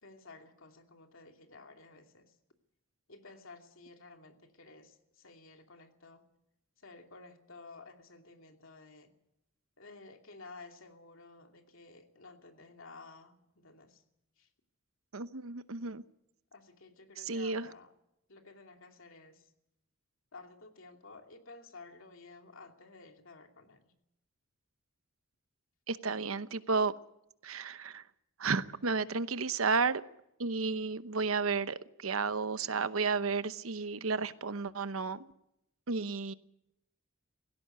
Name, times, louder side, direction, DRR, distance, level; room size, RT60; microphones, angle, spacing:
voice 1, 0.0-2.3 3.1-6.3 6.8-9.1 9.8-14.0 14.4-14.5 16.5-17.9 18.3-19.5 20.3-23.9, left 3 dB, 70° left, 4 dB, 2.7 m, -53 dB
voice 2, 15.1-16.0 17.2-17.7 25.9-26.9 27.4-28.0 28.4-30.0 30.4-35.2 35.9-36.3, right 4 dB, 85° right, 13 dB, 0.9 m, -32 dB
17.5 x 17.0 x 9.3 m, 0.83 s
head